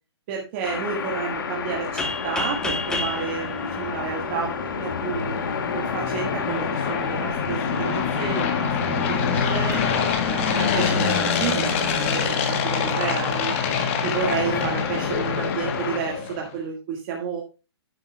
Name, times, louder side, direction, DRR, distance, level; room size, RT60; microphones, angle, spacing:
voice 1, 0.3-5.4 5.7-9.8 10.2-13.5 14.0-17.4, right 6 dB, 25° right, -1 dB, 1.6 m, -31 dB
sound 1, 0.6-16.0, left 6 dB, 50° left, 1.6 m, -30 dB
sound 2, 2.0-4.7, left 2 dB, 5° left, 1.2 m, -31 dB
sound 3, 4.2-16.5, left 6 dB, 30° left, 1.5 m, -26 dB
11.0 x 9.9 x 2.2 m, 0.30 s
hypercardioid pair, 160°, 14 cm